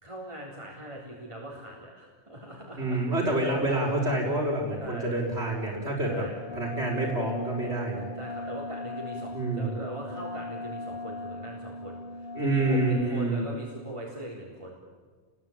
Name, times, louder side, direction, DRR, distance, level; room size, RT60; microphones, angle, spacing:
voice 1, 0.0-3.1 4.8-5.2 6.1-6.4 8.1-14.8, equal, 25° right, -3 dB, 4.1 m, -40 dB
voice 2, 2.8-6.2 6.5-8.1 9.3-9.7 12.4-13.5, right 2 dB, 80° right, -3 dB, 5.3 m, -27 dB
Wind instrument woodwind instrument, 6.4-13.2, left 2 dB, 65° left, 4.1 m, -38 dB
29.5 x 22.0 x 9.0 m, 1.5 s
omnidirectional pair, 1.1 m